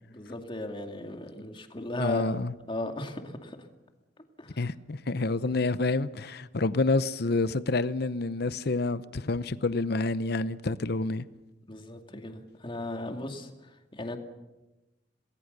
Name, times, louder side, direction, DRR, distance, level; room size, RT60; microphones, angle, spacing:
voice 1, 0.1-2.2 2.7-3.6 4.4-4.6 11.7-14.2, left 2 dB, 30° left, 2.4 m, -36 dB
voice 2, 2.0-2.5 4.6-11.2, left 3 dB, 60° left, 0.8 m, -28 dB
28.0 x 19.5 x 6.8 m
head